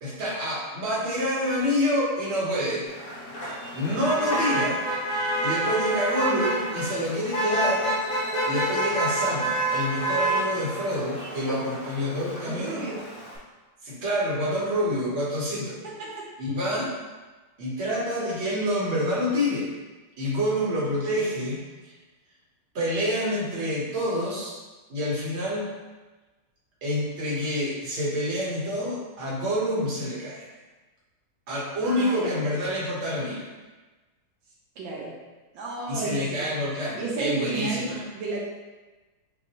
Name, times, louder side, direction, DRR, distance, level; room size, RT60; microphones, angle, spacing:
voice 1, 0.0-2.9 3.7-4.8 5.4-7.9 8.4-12.9 13.8-15.8 16.4-16.9 17.6-19.7 20.2-21.6 22.7-24.5 24.9-25.7 26.8-30.5 31.5-33.5 35.9-38.1, equal, 40° right, -6 dB, 1.3 m, -27 dB
Motor vehicle (road), 2.9-13.4, right 1 dB, 45° left, 0.8 m, -28 dB
voice 2, 12.4-13.0 16.0-16.2 31.8-32.3 34.8-35.1 35.5-36.5 37.0-38.4, right 3 dB, 80° right, -4 dB, 1.5 m, -32 dB
5.9 x 2.7 x 3.0 m, 1.2 s
omnidirectional pair, 2.1 m